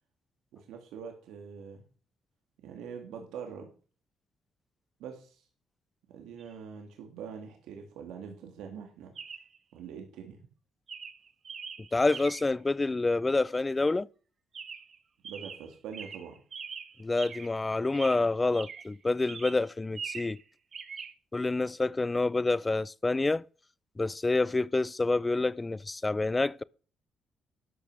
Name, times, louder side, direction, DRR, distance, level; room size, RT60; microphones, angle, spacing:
voice 1, 0.5-1.8 2.6-3.7 5.0-5.4 6.1-9.1 9.7-10.4 15.2-16.4, right 7 dB, 90° right, 2.1 m, -44 dB
Chirp tweet, 6.4-6.5 9.1-9.6 10.3-10.5 10.9-12.6 14.5-15.0 15.2-17.6 17.9-19.0 19.3-20.4 20.7-21.1, right 6 dB, 50° right, 1.2 m, -43 dB
voice 2, 11.9-14.1 17.0-20.4 21.3-23.4 24.0-26.6, left 3 dB, 20° left, 0.4 m, -28 dB
12.5 x 6.0 x 6.4 m
cardioid pair, 90°, 0 cm